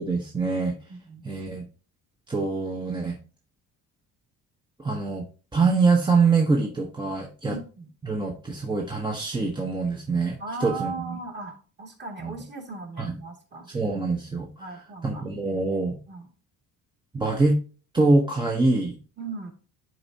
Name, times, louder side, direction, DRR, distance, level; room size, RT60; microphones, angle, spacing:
voice 1, 0.0-0.8 1.2-1.7 2.3-3.2 4.8-5.2 5.5-7.6 8.0-11.2 12.2-12.3 13.0-13.1 13.7-14.5 15.0-16.0 17.1-17.6 17.9-19.0, right 3 dB, 15° right, 0 dB, 0.9 m, -24 dB
voice 2, 0.9-1.2 7.4-7.9 10.4-13.7 14.6-15.2 16.1-16.3 19.2-19.5, right 4 dB, 30° right, 1 dB, 2.2 m, -37 dB
10.5 x 4.3 x 2.7 m, 0.36 s
cardioid pair, 135°, 34 cm